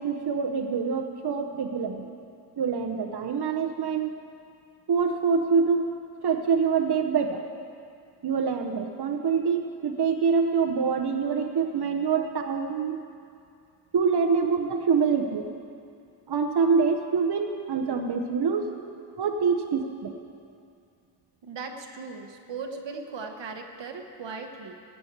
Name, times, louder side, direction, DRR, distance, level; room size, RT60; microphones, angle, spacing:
voice 1, 0.0-2.1 2.6-4.1 4.9-6.0 6.2-7.4 8.2-13.0 13.9-15.4 16.3-18.7 19.2-20.1, right 5 dB, 65° right, 3 dB, 0.8 m, -25 dB
voice 2, 21.4-24.7, right 4 dB, 90° right, 4 dB, 1.2 m, -38 dB
15.5 x 6.1 x 8.5 m, 2.4 s
wide cardioid pair, 100°, 42 cm